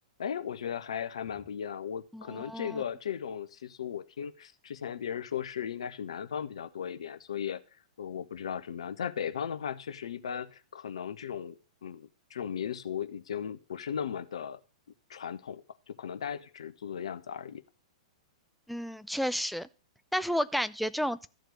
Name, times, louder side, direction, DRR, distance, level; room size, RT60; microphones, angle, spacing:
voice 1, 0.2-7.6 8.0-11.6 11.8-14.6 15.1-15.6 15.9-17.6, left 8 dB, 60° left, 12 dB, 0.9 m, -36 dB
voice 2, 2.1-2.8 18.7-19.7 20.1-21.3, equal, ahead, 13 dB, 0.5 m, -31 dB
13.0 x 4.6 x 8.0 m, 0.35 s
figure-of-eight pair, 105°, 4 cm